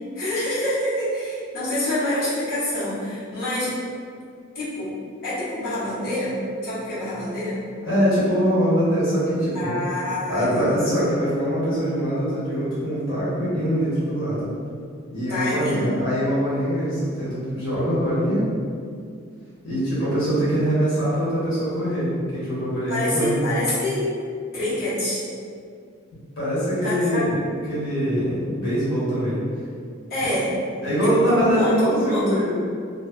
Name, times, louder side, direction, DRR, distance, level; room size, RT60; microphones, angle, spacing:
voice 1, 0.1-3.8 4.5-5.0 5.2-7.7 9.5-10.7 15.3-15.9 22.9-24.1 24.5-25.2 26.8-27.2 30.1-30.5 31.0-32.4, left 1 dB, 50° left, -13 dB, 0.9 m, -27 dB
voice 2, 7.8-9.7 10.2-14.5 15.1-18.4 19.6-23.5 26.4-27.4 27.7-29.4 30.8-32.6, equal, 80° left, -10 dB, 0.9 m, -23 dB
2.4 x 2.4 x 2.2 m, 2.2 s
head